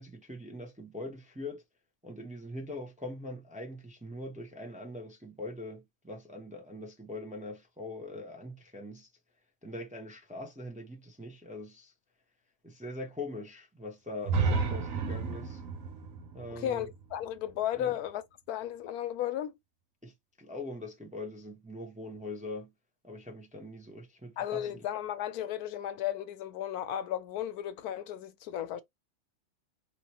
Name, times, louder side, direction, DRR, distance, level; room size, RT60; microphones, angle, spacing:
voice 1, 0.0-1.6 2.0-9.1 9.6-11.9 12.6-15.6 16.3-16.9 17.8-18.0 20.0-22.7 23.0-24.8, left 2 dB, 5° right, 0.6 m, -42 dB
sound 1, 14.2-18.1, right 4 dB, 65° right, 1.1 m, -32 dB
voice 2, 16.5-18.2 18.5-19.5 24.4-28.8, left 11 dB, 85° left, 1.1 m, -34 dB
4.8 x 3.0 x 2.8 m
omnidirectional pair, 1.6 m